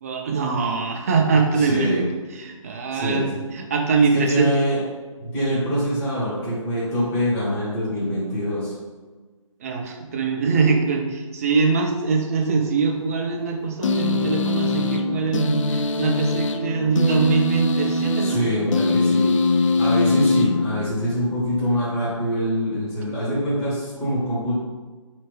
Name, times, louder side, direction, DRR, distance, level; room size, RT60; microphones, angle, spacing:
voice 1, 0.0-2.0 2.4-3.3 3.5-4.5 9.6-18.4, right 4 dB, 25° right, 2 dB, 0.4 m, -22 dB
voice 2, 1.5-2.1 2.9-3.4 4.1-4.8 5.2-8.7 18.2-19.4 19.8-24.6, equal, 10° left, -8 dB, 0.9 m, -24 dB
sound 1, 13.8-21.2, left 2 dB, 65° left, 0.4 m, -22 dB
4.3 x 3.3 x 3.1 m, 1.3 s
hypercardioid pair, 155°, 17 cm